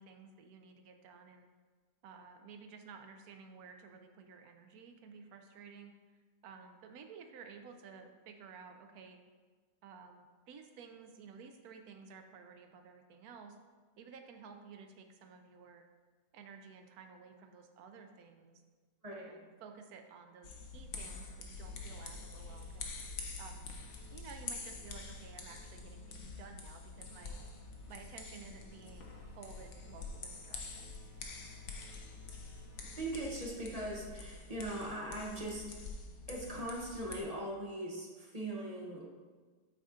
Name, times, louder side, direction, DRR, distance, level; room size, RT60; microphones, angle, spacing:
voice 1, 0.0-1.5 2.0-5.9 6.4-9.2 9.8-13.6 14.0-15.8 16.3-18.6 19.1-22.9 23.4-23.7 24.1-27.4 27.9-31.0, right 5 dB, 65° right, 5 dB, 1.1 m, -53 dB
voice 2, 19.0-19.4 31.5-31.9 32.4-35.8 36.3-39.1, right 1 dB, 35° right, -3 dB, 0.6 m, -41 dB
sound 1, 20.4-37.2, left 4 dB, 55° left, 0.9 m, -47 dB
sound 2, 21.6-23.3 23.7-26.2 26.9-33.3, left 2 dB, 5° left, 1.3 m, -59 dB
8.4 x 4.2 x 3.7 m, 1.4 s
omnidirectional pair, 1.9 m